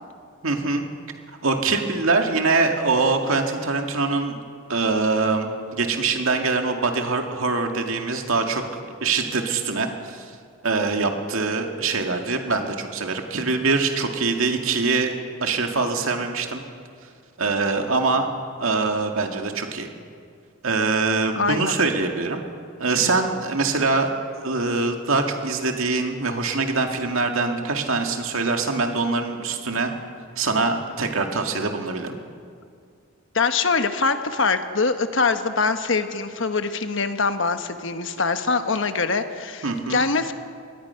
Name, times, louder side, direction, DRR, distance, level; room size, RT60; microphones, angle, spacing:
voice 1, 0.4-0.8 1.4-4.4 4.7-8.6 9.0-10.3 10.6-15.1 15.4-16.6 17.4-18.3 18.6-19.9 20.6-22.4 22.8-24.1 24.4-29.9 30.4-32.2 39.6-40.0, right 3 dB, 75° right, 3 dB, 2.1 m, -23 dB
voice 2, 21.3-21.8 33.3-40.3, left 4 dB, 60° left, 8 dB, 1.2 m, -23 dB
24.0 x 19.5 x 5.8 m, 2.2 s
head